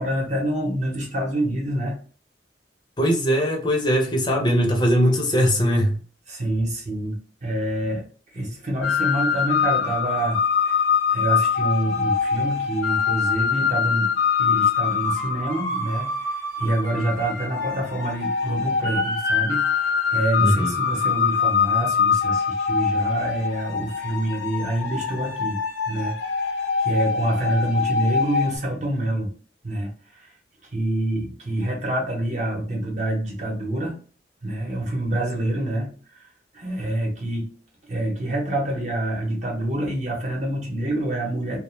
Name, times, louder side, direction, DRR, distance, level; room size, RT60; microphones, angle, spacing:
voice 1, 0.0-2.0 6.3-8.1 8.3-10.4 10.7-10.8 11.1-14.1 14.4-16.2 16.6-19.7 20.1-25.6 25.9-26.4 26.8-29.3 29.6-30.3 30.7-34.0 34.4-36.3 36.5-37.5 37.8-41.6, right 1 dB, 40° right, 0.9 m, -26 dB
voice 2, 3.0-6.0 20.4-20.8, equal, 25° left, 0.5 m, -20 dB
sound 1, 8.8-28.6, left 6 dB, 85° left, 0.6 m, -24 dB
2.3 x 2.2 x 3.1 m
head